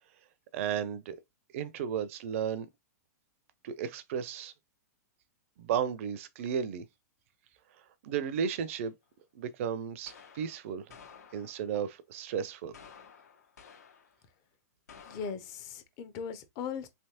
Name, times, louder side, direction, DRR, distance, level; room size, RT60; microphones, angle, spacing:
voice 1, 0.5-1.2 1.5-2.7 3.6-4.5 5.6-6.8 8.0-8.9 9.3-10.8 11.3-12.7, right 8 dB, 50° right, 0.5 m, -34 dB
sound 1, 9.0-9.1 10.1-11.8 12.7-14.2 14.9-15.3, left 6 dB, 70° left, 1.1 m, -53 dB
voice 2, 15.0-16.9, left 6 dB, 40° left, 0.8 m, -39 dB
3.3 x 2.8 x 2.9 m
hypercardioid pair, 110°, 9 cm